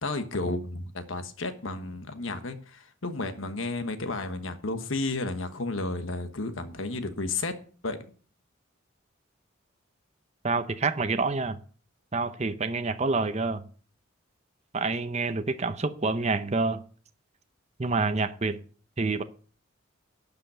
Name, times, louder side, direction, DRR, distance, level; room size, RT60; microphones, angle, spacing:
voice 1, 0.0-7.5 7.8-8.0, left 2 dB, 75° left, 1.3 m, -32 dB
voice 2, 10.4-11.6 12.1-13.7 14.7-16.8 17.8-18.6 19.0-19.2, right 3 dB, 35° right, 0.7 m, -27 dB
12.0 x 5.5 x 8.6 m
head